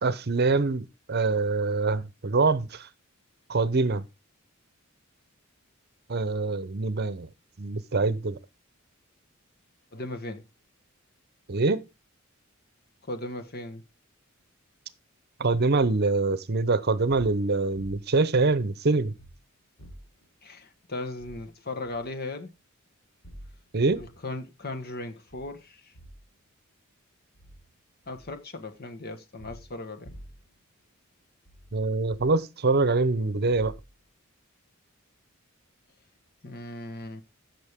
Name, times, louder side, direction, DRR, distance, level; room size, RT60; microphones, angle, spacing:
voice 1, 0.0-2.9 3.5-4.0 6.1-7.3 7.6-8.4 11.5-11.8 15.4-19.1 23.7-24.0 31.7-33.7, right 3 dB, 50° right, 0.8 m, -24 dB
voice 2, 9.9-10.4 13.1-13.8 20.4-22.5 23.9-25.7 28.1-30.1 36.4-37.2, left 2 dB, 50° left, 1.5 m, -37 dB
sound 1, 17.7-18.2 19.1-19.4 19.8-20.3 21.2-21.4 21.8-22.1 23.2-24.2 25.3-25.6 25.9-26.2 27.3-27.7 28.0-28.4 29.4-30.6 31.5-32.4 33.5-34.0, equal, 75° left, 3.5 m, -48 dB
15.0 x 6.5 x 3.6 m
head